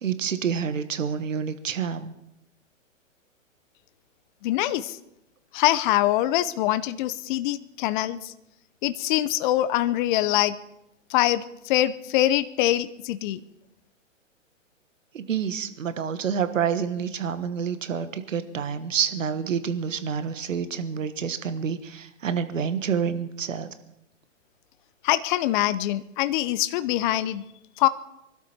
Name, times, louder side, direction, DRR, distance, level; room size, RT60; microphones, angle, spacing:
voice 1, 0.0-2.1 15.1-23.7, right 7 dB, 75° right, 11 dB, 1.5 m, -28 dB
voice 2, 4.4-5.0 5.5-8.3 8.8-10.5 11.1-13.4 25.0-27.4 27.8-27.9, left 14 dB, 40° left, 14 dB, 0.8 m, -24 dB
24.0 x 12.5 x 4.4 m, 0.84 s
hypercardioid pair, 120°, 39 cm